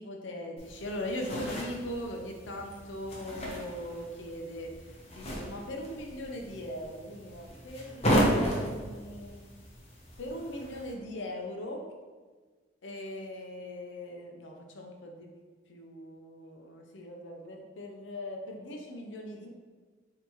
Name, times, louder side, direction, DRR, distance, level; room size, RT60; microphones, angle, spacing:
voice 1, 0.0-9.4 10.2-11.8 12.8-15.3 15.7-19.5, left 1 dB, 80° left, 2 dB, 0.7 m, -40 dB
sound 1, 0.6-10.9, equal, 35° left, 0.9 m, -34 dB
5.5 x 2.9 x 3.0 m, 1.4 s
head